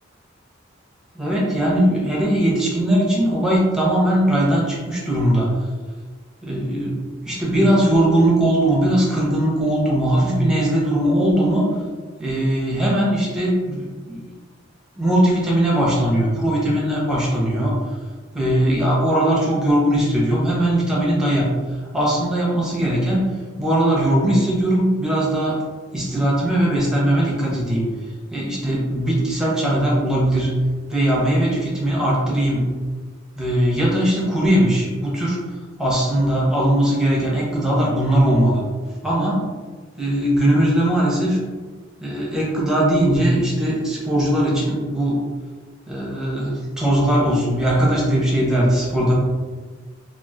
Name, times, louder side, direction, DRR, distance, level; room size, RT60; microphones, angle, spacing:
voice 1, 1.1-5.5 6.4-11.7 12.2-14.2 15.0-17.8 18.3-21.5 21.9-23.3 23.6-25.6 25.9-27.8 28.3-30.5 30.9-32.7 33.4-35.4 35.8-38.6 39.0-39.5 40.0-41.4 42.0-45.2 45.9-49.1, right 1 dB, 5° right, -5 dB, 0.7 m, -19 dB
2.9 x 2.4 x 2.4 m, 1.4 s
head